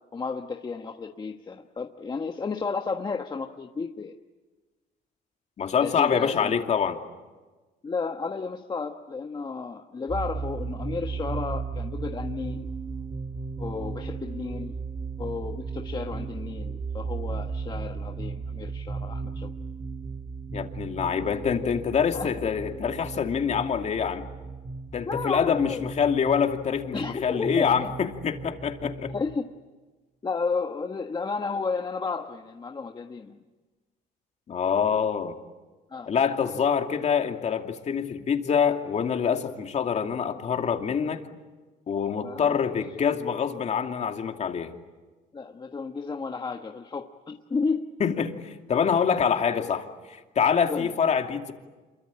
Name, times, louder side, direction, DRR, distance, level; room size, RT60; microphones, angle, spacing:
voice 1, 0.1-4.1 5.8-6.6 7.8-12.7 13.6-14.7 15.2-19.5 22.1-22.3 25.1-25.9 26.9-27.9 29.1-29.5 30.2-33.4 35.9-36.1 42.2-42.6 45.3-48.0 50.7-50.9, left 4 dB, 25° left, 4 dB, 1.3 m, -32 dB
voice 2, 5.6-7.0 20.5-24.2 24.9-29.1 34.5-35.4 36.1-41.2 41.9-44.7 48.0-48.4 48.7-51.5, left 7 dB, 45° left, 4 dB, 2.6 m, -25 dB
sound 1, 10.1-29.3, right 4 dB, 35° right, 4.0 m, -35 dB
27.5 x 23.0 x 8.7 m, 1.3 s
cardioid pair, 110°, 17 cm